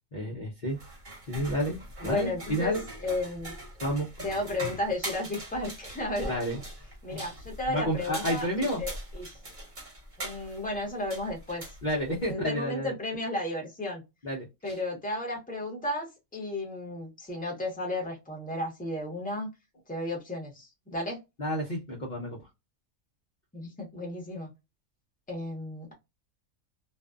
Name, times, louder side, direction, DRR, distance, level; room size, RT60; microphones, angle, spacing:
voice 1, 0.1-0.8 1.3-2.8 3.8-4.1 6.3-6.6 7.7-8.8 11.8-12.9 14.2-14.8 21.4-22.4, equal, 45° left, -3 dB, 0.7 m, -30 dB
sound 1, 0.7-12.3, right 1 dB, 40° right, 1.0 m, -41 dB
voice 2, 2.0-2.7 3.0-3.5 4.2-6.3 7.0-9.3 10.2-11.6 12.3-14.0 14.6-16.1 16.3-19.5 19.9-21.2 23.5-24.5 25.3-25.9, left 1 dB, 5° left, 0 dB, 0.8 m, -33 dB
2.5 x 2.3 x 2.3 m, 0.23 s
omnidirectional pair, 1.5 m